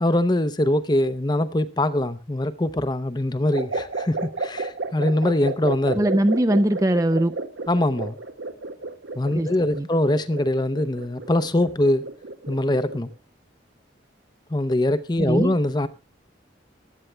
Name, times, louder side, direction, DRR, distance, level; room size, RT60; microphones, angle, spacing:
voice 1, 0.0-6.1 7.7-8.2 9.2-12.1 12.5-13.1 14.5-15.9, left 1 dB, 25° left, 0.7 m, -23 dB
sound 1, 3.5-13.1, right 3 dB, 75° right, 1.1 m, -32 dB
voice 2, 6.0-7.4 9.3-9.5 9.8-9.9 15.2-15.5, right 1 dB, 15° right, 0.5 m, -21 dB
16.0 x 11.0 x 3.3 m
head